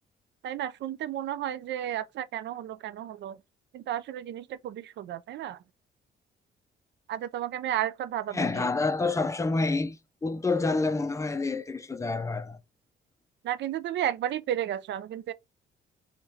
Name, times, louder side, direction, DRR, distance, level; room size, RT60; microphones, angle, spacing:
voice 1, 0.4-3.4 3.7-5.6 7.1-8.7 13.4-15.3, right 11 dB, 65° right, 0.4 m, -33 dB
voice 2, 8.3-12.6, left 3 dB, 15° left, 0.4 m, -28 dB
4.8 x 3.0 x 2.7 m
cardioid pair, 90°, 20 cm